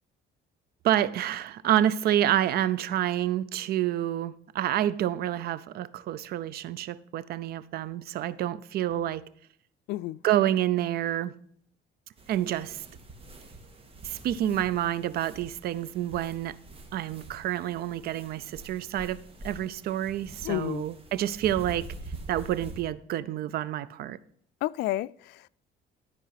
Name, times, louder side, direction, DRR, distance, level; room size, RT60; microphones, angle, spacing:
voice 1, 0.8-9.2 10.2-11.3 12.3-12.8 14.0-16.6 16.9-21.9 22.3-24.2, right 12 dB, 65° right, 0.7 m, -28 dB
voice 2, 9.9-10.2 20.4-20.9 24.6-25.5, left 16 dB, 80° left, 0.4 m, -31 dB
sound 1, 12.2-22.8, right 2 dB, 35° right, 2.2 m, -45 dB
13.0 x 4.8 x 5.8 m
cardioid pair, 110°, 17 cm